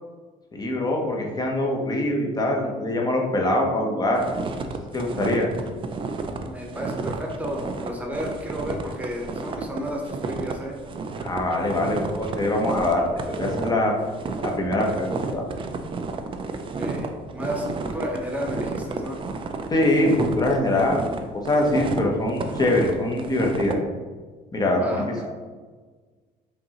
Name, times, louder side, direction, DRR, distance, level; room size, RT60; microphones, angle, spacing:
voice 1, 0.5-4.2 4.9-5.5 11.2-13.9 14.4-15.4 19.7-21.1 21.4-23.8 24.5-24.8, left 1 dB, 25° left, 0 dB, 0.8 m, -23 dB
sound 1, 4.1-23.7, right 4 dB, 30° right, 0.4 m, -31 dB
voice 2, 6.4-10.8 16.8-19.2 24.7-25.3, equal, 10° right, -1 dB, 1.0 m, -32 dB
5.2 x 2.8 x 2.9 m, 1.4 s
cardioid pair, 100°, 17 cm